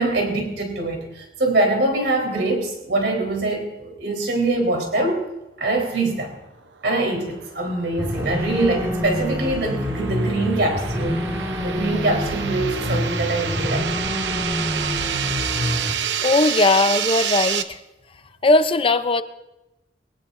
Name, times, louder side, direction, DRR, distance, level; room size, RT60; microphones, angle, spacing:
voice 1, 0.0-5.3 5.6-6.3 6.8-11.2 11.6-13.9, right 2 dB, 70° right, 1 dB, 4.0 m, -23 dB
sound 1, 7.2-17.6, right 8 dB, 90° right, 0.8 m, -29 dB
sound 2, 8.0-15.9, equal, 15° right, 1.7 m, -27 dB
voice 2, 16.2-17.8 18.4-19.2, left 2 dB, 30° left, 11 dB, 0.6 m, -18 dB
22.5 x 19.0 x 2.6 m, 0.95 s
head